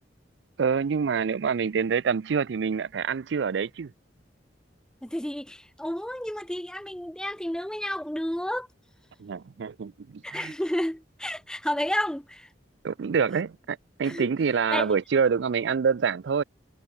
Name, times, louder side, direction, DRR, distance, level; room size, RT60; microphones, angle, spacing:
voice 1, 0.6-3.9 9.2-10.5 12.8-16.4, right 6 dB, 75° right, 0.4 m, -26 dB
voice 2, 5.0-8.7 10.2-12.5 14.0-14.3 14.7-15.0, left 1 dB, 5° left, 0.7 m, -31 dB
head